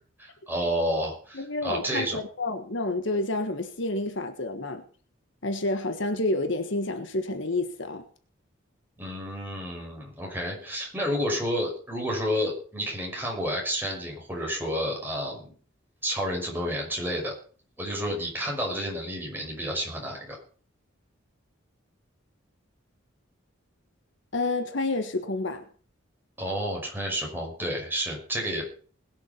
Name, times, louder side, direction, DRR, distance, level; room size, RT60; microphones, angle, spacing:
voice 1, 0.2-2.2 9.0-15.5 16.0-17.3 17.8-20.4 26.4-28.6, equal, 10° right, 5.8 m, -30 dB
voice 2, 1.3-4.8 5.4-8.0 24.3-25.6, left 2 dB, 60° left, 1.5 m, -29 dB
21.0 x 7.6 x 5.8 m
head